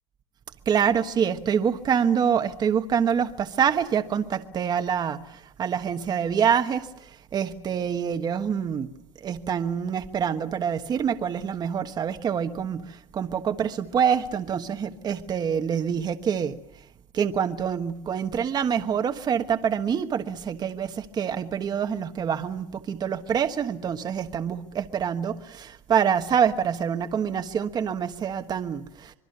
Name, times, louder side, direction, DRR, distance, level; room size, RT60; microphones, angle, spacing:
voice 1, 0.7-5.2 5.6-6.9 7.3-8.9 9.2-12.8 13.1-16.5 17.1-29.1, right 7 dB, 30° right, 7 dB, 1.3 m, -26 dB
26.0 x 22.5 x 6.8 m, 0.82 s
cardioid pair, 155°, 15 cm